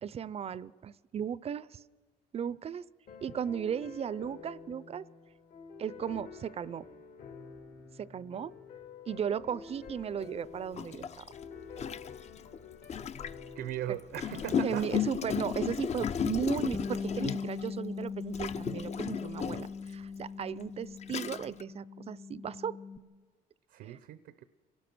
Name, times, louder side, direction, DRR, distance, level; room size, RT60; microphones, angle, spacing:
voice 1, 0.0-1.8 2.3-2.9 3.2-5.0 5.8-6.9 8.0-8.5 9.1-11.2 13.9-14.0 14.6-22.8 23.8-24.0, right 8 dB, 35° right, 20 dB, 0.5 m, -36 dB
sound 1, 3.1-15.1, left 5 dB, 60° left, 2.3 m, -49 dB
Gurgling, 9.9-10.0 10.7-13.5 14.1-17.7 18.3-19.8 20.5-20.6 21.0-21.6, left 8 dB, 40° left, 0.7 m, -34 dB
voice 2, 13.5-14.9 23.7-24.4, right 12 dB, 80° right, 13 dB, 0.8 m, -38 dB
Bass guitar, 16.7-23.0, left 5 dB, 10° left, 0.7 m, -40 dB
26.5 x 18.0 x 6.1 m, 1.4 s
cardioid pair, 110°, 17 cm